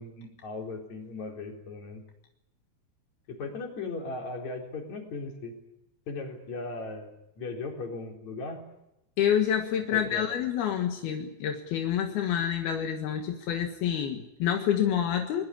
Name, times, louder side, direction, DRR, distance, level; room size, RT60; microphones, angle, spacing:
voice 1, 0.0-2.0 3.4-5.5 6.1-8.6 9.9-10.3, left 3 dB, 50° left, 2 dB, 5.2 m, -37 dB
voice 2, 9.2-15.4, left 9 dB, 80° left, 4 dB, 3.5 m, -28 dB
22.5 x 21.0 x 9.9 m, 0.88 s
omnidirectional pair, 4.4 m